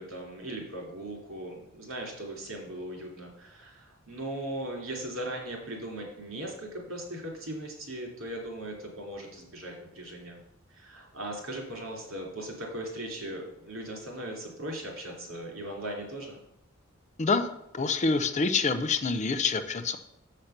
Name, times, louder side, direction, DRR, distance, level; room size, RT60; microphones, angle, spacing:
voice 1, 0.0-10.4 10.7-16.4, right 1 dB, 70° right, -1 dB, 3.1 m, -38 dB
voice 2, 17.7-20.0, left 4 dB, 35° left, 10 dB, 0.5 m, -26 dB
7.4 x 6.5 x 5.8 m, 0.80 s
head